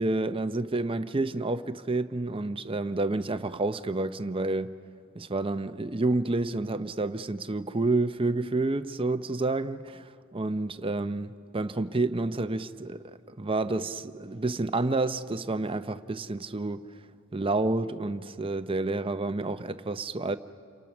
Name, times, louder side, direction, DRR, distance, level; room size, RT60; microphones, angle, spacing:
voice 1, 0.0-4.7 5.1-16.8 17.3-20.4, right 2 dB, 25° right, 0.7 m, -29 dB
29.5 x 26.5 x 6.1 m
head